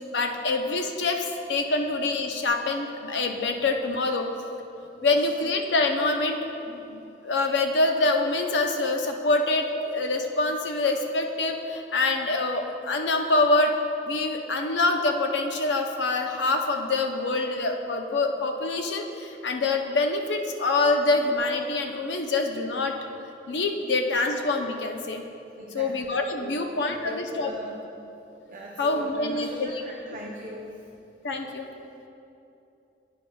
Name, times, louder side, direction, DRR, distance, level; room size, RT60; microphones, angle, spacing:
voice 1, 0.1-4.3 5.0-6.4 6.6-13.8 14.1-23.0 23.5-25.2 25.7-27.5 28.8-29.8 31.2-31.6, left 2 dB, 80° left, 4 dB, 0.7 m, -25 dB
voice 2, 25.6-25.9 26.3-26.7 26.9-27.7 28.5-30.7, equal, 45° right, -3 dB, 0.7 m, -40 dB
10.5 x 8.8 x 2.3 m, 2.8 s
head